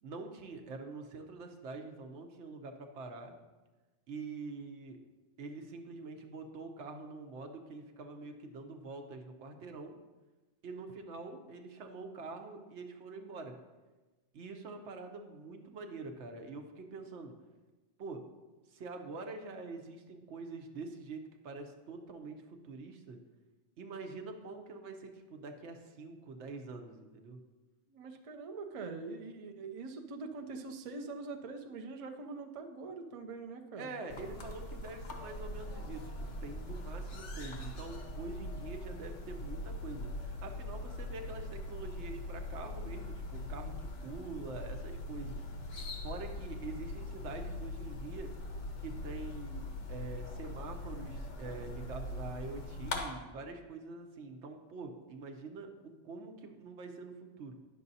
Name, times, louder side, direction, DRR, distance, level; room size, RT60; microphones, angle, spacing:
voice 1, 0.0-3.3 4.1-5.0 5.4-9.9 10.6-13.5 14.3-17.3 18.0-18.2 18.7-23.2 23.8-27.4 33.8-45.4 46.0-48.3 48.8-57.6, right 3 dB, 75° right, 5 dB, 1.0 m, -45 dB
voice 2, 27.9-34.0, right 3 dB, 45° right, 4 dB, 0.4 m, -43 dB
sound 1, 34.1-53.0, left 1 dB, 90° left, 1.2 m, -42 dB
9.7 x 6.5 x 2.7 m, 1.2 s
omnidirectional pair, 1.2 m